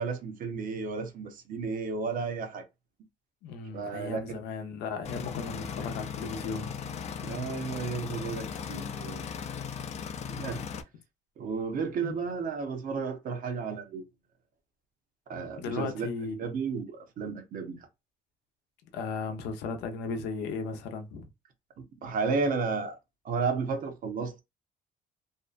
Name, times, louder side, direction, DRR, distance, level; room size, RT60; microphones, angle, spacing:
voice 1, 0.0-2.6 3.7-4.4 7.2-9.2 10.3-10.6 11.4-14.0 15.3-17.8 21.8-23.0 23.2-24.4, right 5 dB, 55° right, 0.7 m, -33 dB
voice 2, 3.4-6.7 12.0-12.1 15.6-16.4 18.9-21.3, left 4 dB, 85° left, 0.6 m, -36 dB
sound 1, 5.0-10.8, left 7 dB, 40° left, 0.4 m, -37 dB
2.6 x 2.1 x 2.4 m
cardioid pair, 110°, 17 cm